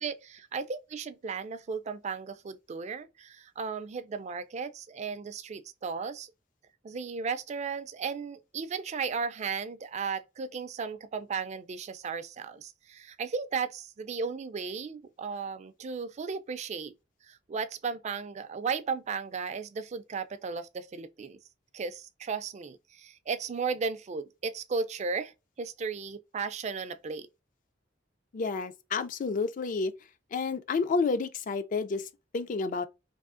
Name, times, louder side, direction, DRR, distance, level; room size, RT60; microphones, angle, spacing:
voice 1, 0.0-6.3 6.8-16.9 17.3-21.4 21.7-27.3, right 5 dB, 35° right, 0.3 m, -35 dB
voice 2, 28.3-29.9 30.3-32.9, left 4 dB, 45° left, 0.3 m, -30 dB
3.4 x 2.7 x 2.4 m
head